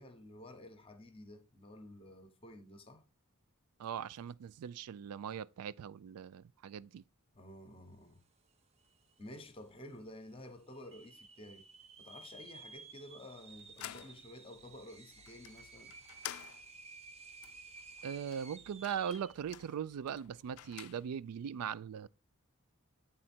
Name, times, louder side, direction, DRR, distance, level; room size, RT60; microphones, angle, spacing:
voice 1, 0.0-3.0 7.3-8.2 9.2-11.7 12.0-15.9, left 1 dB, 25° left, 0.8 m, -52 dB
voice 2, 3.8-7.0 18.0-22.1, right 8 dB, 90° right, 0.3 m, -40 dB
sound 1, 8.5-8.6 8.8-9.4 9.9-10.0 10.7-19.4, right 4 dB, 30° right, 0.4 m, -54 dB
sound 2, 13.4-21.4, left 13 dB, 85° left, 0.4 m, -52 dB
8.8 x 3.7 x 4.3 m
head